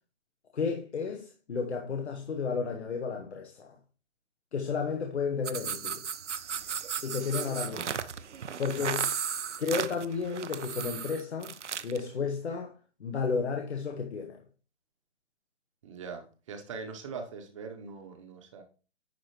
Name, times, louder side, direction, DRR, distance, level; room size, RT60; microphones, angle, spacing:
voice 1, 0.5-3.7 4.5-6.0 7.0-7.8 8.6-9.1 9.6-11.5 11.8-12.7 13.0-14.4, left 5 dB, 65° left, 1.3 m, -32 dB
sound 1, 5.4-12.0, right 7 dB, 80° right, 0.7 m, -35 dB
voice 2, 7.6-7.9 15.8-18.6, right 5 dB, 25° right, 1.0 m, -42 dB
10.5 x 4.6 x 3.1 m
hypercardioid pair, 155°, 36 cm